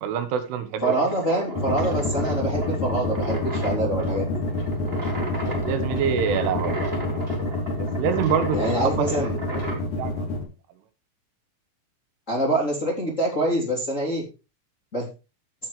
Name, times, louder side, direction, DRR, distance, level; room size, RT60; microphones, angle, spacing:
voice 1, 0.0-1.2 5.4-7.1 8.0-8.9 9.5-10.3, right 8 dB, 80° right, 10 dB, 3.7 m, -27 dB
voice 2, 0.8-4.4 8.5-9.3 12.3-14.2 14.9-15.1, right 1 dB, 20° left, -1 dB, 2.6 m, -25 dB
sound 1, 0.8-9.9, right 1 dB, 20° right, 1.8 m, -34 dB
sound 2, 1.5-10.4, left 2 dB, 40° left, 4.1 m, -27 dB
15.5 x 8.8 x 3.2 m, 0.29 s
omnidirectional pair, 5.7 m